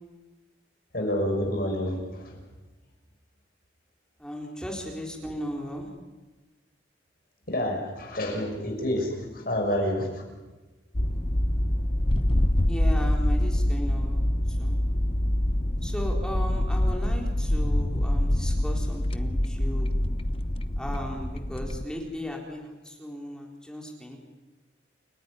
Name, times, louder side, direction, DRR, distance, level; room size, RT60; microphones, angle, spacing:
voice 1, 0.9-2.4 7.5-10.1, left 1 dB, 50° left, 1 dB, 6.4 m, -28 dB
voice 2, 4.2-5.9 12.7-14.8 15.8-20.0 20.8-24.2, equal, 5° left, 0 dB, 4.0 m, -36 dB
sound 1, 10.9-21.8, left 1 dB, 30° left, 0.9 m, -25 dB
29.5 x 18.0 x 9.9 m, 1.2 s
head